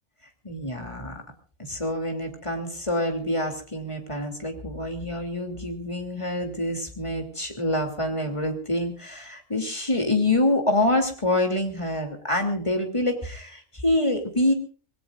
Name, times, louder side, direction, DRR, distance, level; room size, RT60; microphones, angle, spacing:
voice 1, 0.4-1.2 1.6-14.5, left 1 dB, 25° left, 4 dB, 3.0 m, -26 dB
26.5 x 19.5 x 2.5 m, 0.40 s
omnidirectional pair, 1.3 m